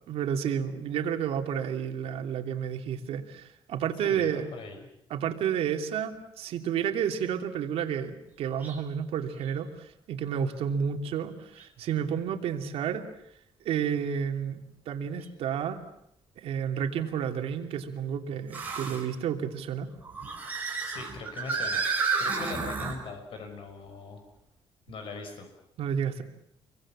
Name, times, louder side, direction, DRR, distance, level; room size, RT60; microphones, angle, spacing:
voice 1, 0.1-4.5 5.1-13.0 13.6-15.8 16.4-19.9 25.8-26.2, right 8 dB, 90° right, 5 dB, 2.9 m, -31 dB
voice 2, 4.0-4.8 20.9-21.8 22.2-24.2 24.9-25.5, left 3 dB, 65° left, 5 dB, 5.7 m, -40 dB
sound 1, 8.6-8.8 9.4-9.5 11.6-11.7 15.2-15.3 18.5-19.0 20.0-23.0, right 4 dB, 15° right, 5.1 m, -31 dB
28.5 x 23.5 x 7.5 m, 0.77 s
cardioid pair, 175°, 10 cm